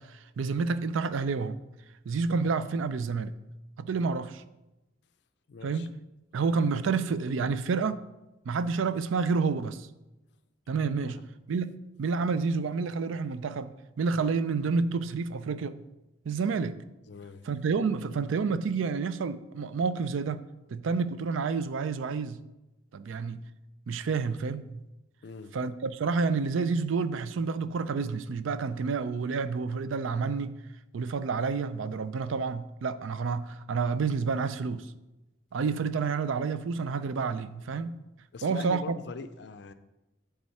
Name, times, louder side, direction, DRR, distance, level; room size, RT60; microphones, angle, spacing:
voice 1, 0.0-1.6 2.1-3.3 3.8-4.4 5.6-5.9 6.3-8.0 8.5-9.9 10.7-11.2 11.5-13.7 14.0-15.8 16.3-16.7 17.5-20.4 20.7-22.4 22.9-23.4 23.9-24.8 25.5-30.6 30.9-34.9 35.5-38.0 38.4-39.0, right 4 dB, 85° right, 0.4 m, -29 dB
voice 2, 5.5-5.9 11.0-11.2 17.1-17.4 25.2-25.5 38.3-39.7, left 4 dB, 60° left, 0.4 m, -42 dB
10.5 x 3.6 x 4.2 m
head